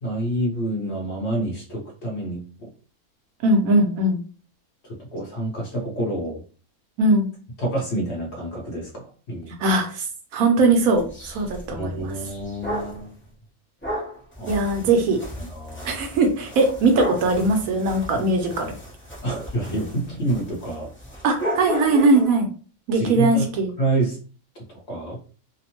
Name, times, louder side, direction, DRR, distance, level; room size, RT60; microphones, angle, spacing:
voice 1, 0.0-2.4 4.8-6.4 7.6-9.6 11.8-13.1 14.4-14.6 15.4-15.9 19.2-20.9 22.9-23.5 23.8-24.2 24.7-25.2, right 2 dB, 55° left, -1 dB, 1.0 m, -28 dB
voice 2, 3.4-4.2 7.0-7.3 9.6-10.1 10.3-12.1 14.5-15.2 15.8-18.8 21.2-22.5 22.9-23.7, right 2 dB, 75° right, 4 dB, 1.0 m, -20 dB
sound 1, 10.9-13.1 13.8-22.4, equal, 10° left, 0.6 m, -35 dB
2.9 x 2.0 x 2.9 m, 0.39 s
omnidirectional pair, 1.6 m